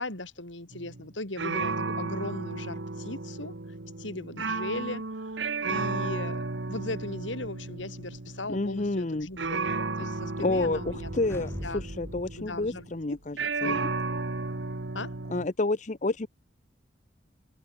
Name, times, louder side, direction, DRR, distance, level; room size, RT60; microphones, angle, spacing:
voice 1, 0.0-3.5 4.0-11.8 12.4-13.2 13.4-13.8 14.9-15.1, left 2 dB, 85° left, 5.1 m, -38 dB
sound 1, 0.7-1.1 1.4-12.9 13.4-15.5, right 3 dB, 75° right, 1.4 m, -34 dB
voice 2, 8.5-9.3 10.4-13.4 13.6-13.9 15.3-16.3, left 2 dB, 40° left, 0.8 m, -29 dB
sound 2, 9.5-13.4, equal, 15° left, 3.9 m, -42 dB
head